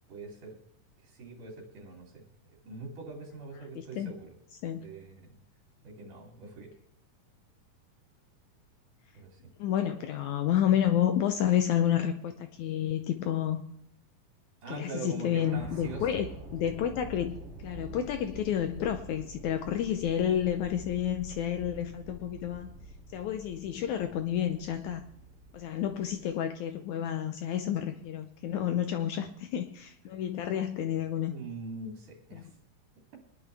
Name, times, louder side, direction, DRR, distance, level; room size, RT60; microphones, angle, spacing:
voice 1, 0.1-0.6 1.0-2.2 2.6-4.3 4.7-5.4 5.8-6.7 9.1-9.5 14.6-16.2 16.6-16.8 31.3-32.5, right 3 dB, 65° right, -2 dB, 4.4 m, -43 dB
voice 2, 9.6-13.6 14.7-16.3 16.5-22.7 23.1-25.0 25.5-31.4 32.3-32.4, left 10 dB, 75° left, 7 dB, 1.8 m, -30 dB
sound 1, 15.2-26.3, right 1 dB, 30° right, 3.7 m, -47 dB
24.0 x 10.5 x 3.4 m, 0.74 s
omnidirectional pair, 4.0 m